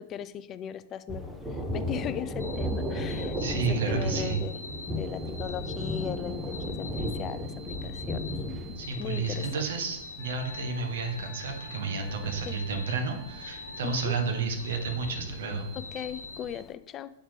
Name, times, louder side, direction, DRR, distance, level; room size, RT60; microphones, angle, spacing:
voice 1, 0.0-4.5 4.9-8.3 9.0-9.5 12.2-12.6 13.8-14.2 15.9-17.1, left 9 dB, 30° left, 14 dB, 0.3 m, -38 dB
Thunder, 1.1-16.6, left 1 dB, 5° right, 0.7 m, -36 dB
sound 1, 2.4-16.6, left 2 dB, 80° left, 0.8 m, -44 dB
voice 2, 3.3-4.4 8.8-15.7, right 4 dB, 60° right, 4 dB, 1.1 m, -31 dB
Wind instrument woodwind instrument, 10.2-14.4, left 2 dB, 85° right, 1.5 m, -51 dB
8.0 x 4.3 x 3.3 m, 0.80 s
figure-of-eight pair, 100°, 0 cm